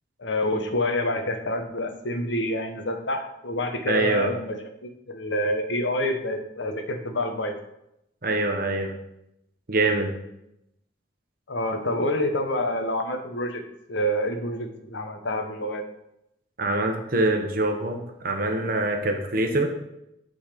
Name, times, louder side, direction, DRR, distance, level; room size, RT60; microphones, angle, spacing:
voice 1, 0.2-4.6 4.8-7.6 11.5-13.6 13.9-15.8, left 1 dB, 70° left, 6 dB, 1.0 m, -27 dB
voice 2, 3.9-4.3 8.2-8.9 9.7-10.1 16.6-18.0 18.2-19.7, right 2 dB, 50° right, 3 dB, 0.9 m, -24 dB
8.7 x 4.0 x 5.1 m, 0.82 s
head